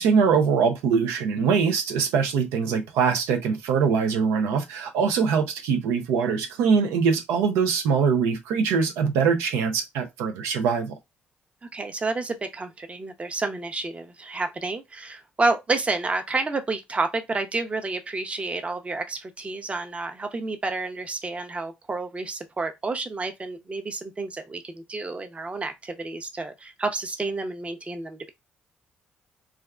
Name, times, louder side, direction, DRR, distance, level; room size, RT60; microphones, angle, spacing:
voice 1, 0.0-11.0, right 6 dB, 90° right, 0.4 m, -23 dB
voice 2, 11.7-28.3, right 3 dB, 30° right, 0.6 m, -30 dB
3.3 x 2.3 x 2.2 m
supercardioid pair, 65°, 4 cm